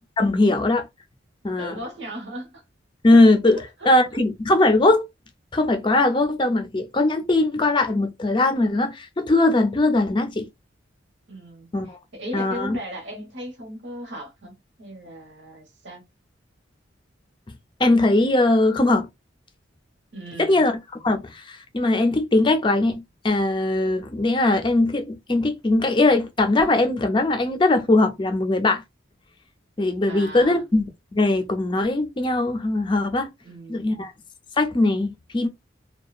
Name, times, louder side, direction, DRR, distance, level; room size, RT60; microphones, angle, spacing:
voice 1, 0.2-0.8 1.4-1.8 3.0-3.6 3.9-5.1 5.5-10.5 11.7-12.0 12.3-12.8 17.8-19.1 20.4-20.8 21.0-28.8 29.8-30.8 31.1-33.3 33.7-34.1 34.6-35.5, left 2 dB, 25° left, 0.4 m, -20 dB
voice 2, 1.6-2.6 3.5-3.9 11.3-16.0 20.1-20.6 30.1-30.7 33.4-34.0, equal, 70° right, 1.0 m, -37 dB
2.8 x 2.2 x 2.3 m
head